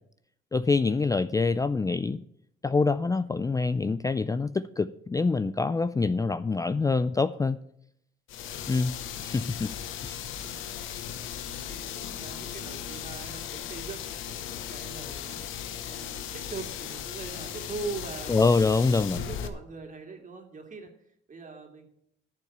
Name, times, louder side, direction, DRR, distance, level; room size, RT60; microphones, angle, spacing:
voice 1, 0.5-2.2 2.6-7.6 8.7-8.9 9.2-9.7 10.0-10.3 18.3-19.2, left 4 dB, 15° left, 13 dB, 0.4 m, -25 dB
sound 1, 8.3-19.5, left 10 dB, 90° left, 1.0 m, -37 dB
voice 2, 10.0-18.4 19.2-20.9 21.3-21.9, right 4 dB, 40° right, 3 dB, 2.6 m, -42 dB
10.5 x 5.4 x 8.6 m, 0.74 s
cardioid pair, 90°, 20 cm